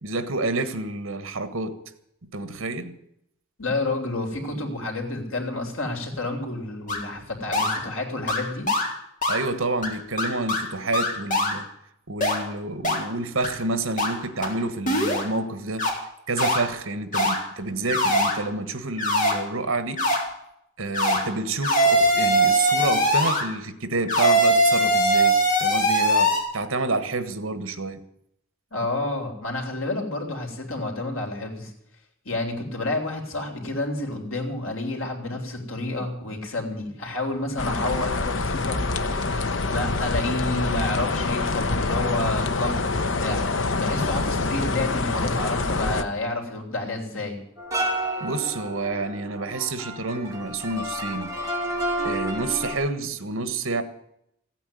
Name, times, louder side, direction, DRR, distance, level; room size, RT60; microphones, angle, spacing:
voice 1, 0.0-1.8 2.3-2.9 9.3-11.7 12.1-15.8 16.3-20.0 20.8-28.0 48.2-51.3 52.0-53.8, right 3 dB, 75° right, 11 dB, 1.5 m, -28 dB
voice 2, 3.6-8.7 28.7-31.7 32.3-38.8 39.7-47.4, left 2 dB, 85° left, 2 dB, 3.7 m, -29 dB
sound 1, 6.9-7.0 7.5-7.8 8.3-8.4 8.7-8.9 9.2-9.4 9.8-9.9 10.2-10.6 10.9-11.5 12.2-12.4 12.8-13.0 13.4-13.5 14.0-14.1 14.4-14.5 14.9-15.2 15.8-15.9 16.4-16.6 17.1-17.4 17.9-18.3 19.0-19.3 20.0-20.2 20.9-21.2 21.6-23.4 24.1-26.4, equal, 40° left, 3.8 m, -21 dB
sound 2, 37.6-46.0, left 3 dB, 60° left, 1.0 m, -26 dB
sound 3, 47.6-52.7, right 1 dB, 15° right, 4.5 m, -30 dB
15.5 x 9.2 x 9.4 m, 0.76 s
head